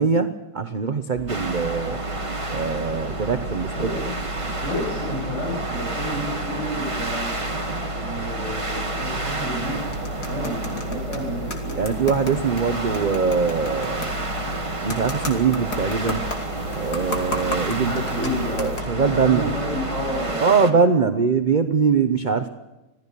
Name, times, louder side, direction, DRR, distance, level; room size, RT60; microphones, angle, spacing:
voice 1, 0.0-2.0 2.5-3.9 11.7-14.1 14.8-16.2 16.7-17.9 18.6-19.5 20.4-22.5, right 5 dB, 35° right, 9 dB, 0.8 m, -22 dB
sound 1, 1.1-20.4, right 1 dB, 85° right, 1.9 m, -34 dB
sound 2, 1.3-20.7, right 2 dB, 20° right, 1.9 m, -31 dB
voice 2, 3.7-4.1 4.6-7.3 8.0-11.8 17.8-18.7 18.9-21.1, equal, 40° left, -4 dB, 7.1 m, -31 dB
sound 3, 9.6-18.8, left 2 dB, 65° left, 3.7 m, -35 dB
26.5 x 17.5 x 6.9 m, 1.0 s
omnidirectional pair, 1.9 m